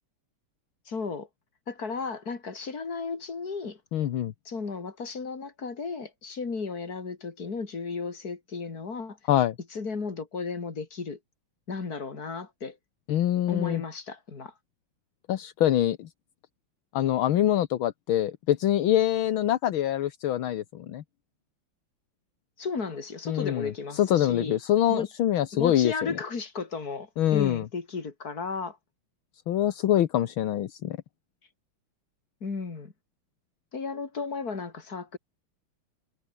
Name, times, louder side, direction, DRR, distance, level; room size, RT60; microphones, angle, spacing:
voice 1, 0.9-1.3 1.7-3.8 4.5-9.2 9.7-11.2 11.7-12.8 13.5-14.5 22.6-24.6 24.9-25.1 25.5-28.8 32.4-32.9 33.7-35.2, left 4 dB, 45° left, 3.4 m, -34 dB
voice 2, 3.9-4.3 9.3-9.6 13.1-13.8 15.3-16.1 16.9-21.0 23.3-26.1 27.2-27.7 29.5-31.0, left 12 dB, 75° left, 1.8 m, -25 dB
omnidirectional pair, 2.4 m